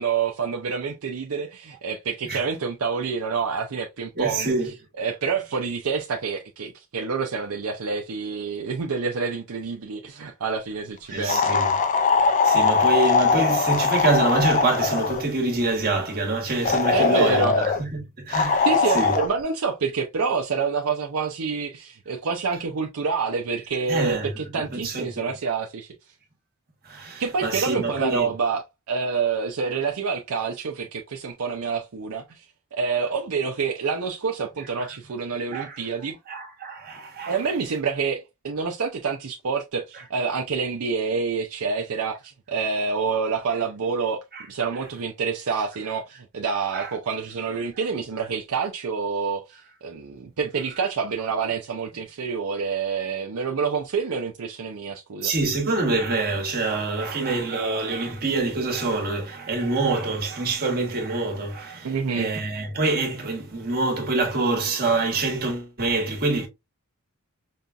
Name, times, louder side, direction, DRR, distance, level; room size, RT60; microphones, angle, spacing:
voice 1, 0.0-11.6 16.9-17.5 18.6-25.9 27.2-32.5 32.8-36.2 37.3-55.3 61.8-62.3, right 5 dB, 70° right, 0.6 m, -27 dB
voice 2, 4.2-4.7 11.1-11.7 12.4-18.7 18.9-19.1 23.9-25.3 26.8-28.3 35.5-35.8 36.3-37.4 44.3-44.4 46.7-46.9 55.2-66.5, right 3 dB, 45° right, 1.4 m, -26 dB
sound 1, 11.3-15.3 16.6-17.8 18.3-19.3, left 5 dB, 35° left, 0.4 m, -21 dB
5.4 x 2.3 x 2.5 m
head